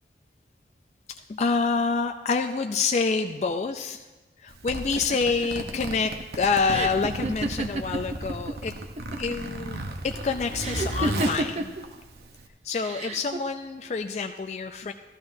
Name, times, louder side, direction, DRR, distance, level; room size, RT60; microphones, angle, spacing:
voice 1, 1.1-4.0 4.4-8.7 9.2-11.7 12.6-14.9, left 4 dB, 40° left, 6 dB, 0.3 m, -27 dB
Zipper (clothing), 4.5-12.5, right 1 dB, 65° right, 0.8 m, -35 dB
sound 1, 5.0-8.5 8.8-9.5 10.6-11.8 12.8-13.4, right 2 dB, 35° right, 0.5 m, -30 dB
13.5 x 13.0 x 2.6 m, 1.2 s
head